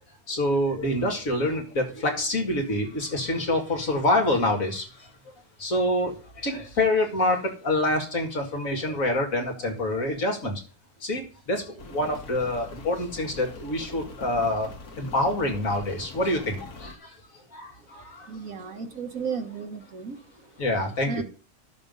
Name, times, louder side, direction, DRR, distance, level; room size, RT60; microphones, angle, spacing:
voice 1, 0.3-5.1 5.6-10.6 11.0-14.7 15.0-17.2 17.5-18.3 20.6-21.2, left 1 dB, 60° left, 3 dB, 2.5 m, -26 dB
Rain, 11.8-17.0, left 3 dB, 75° left, 1.9 m, -43 dB
voice 2, 18.3-20.2 21.1-21.2, right 5 dB, 60° right, 5 dB, 1.9 m, -33 dB
12.5 x 6.9 x 5.4 m, 0.37 s
omnidirectional pair, 1.6 m